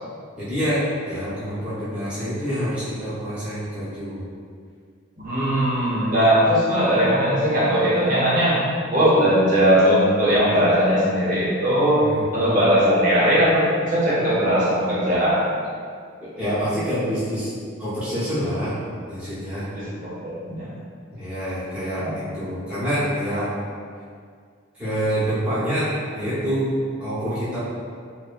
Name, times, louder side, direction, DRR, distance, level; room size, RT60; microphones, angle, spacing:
voice 1, 0.4-4.2 12.0-12.2 16.2-17.5 17.8-18.7 19.1-19.7 21.1-23.5 24.8-26.7 27.0-27.6, equal, 5° right, -14 dB, 0.8 m, -26 dB
voice 2, 5.2-12.0 12.3-15.4 19.7-20.7 22.0-22.1, equal, 40° right, -9 dB, 0.8 m, -19 dB
2.6 x 2.1 x 2.4 m, 2.1 s
head